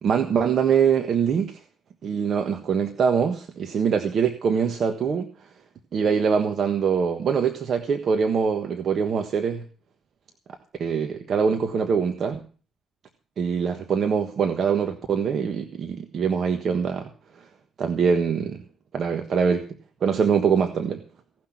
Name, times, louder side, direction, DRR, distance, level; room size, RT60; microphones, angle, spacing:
voice 1, 0.0-1.6 2.0-5.3 5.9-9.6 10.8-12.4 13.4-17.1 17.4-17.5 17.8-18.6 18.9-19.7 20.0-21.0, right 6 dB, 60° right, 1.4 m, -23 dB
17.0 x 6.2 x 8.8 m
cardioid pair, 90°, 0 cm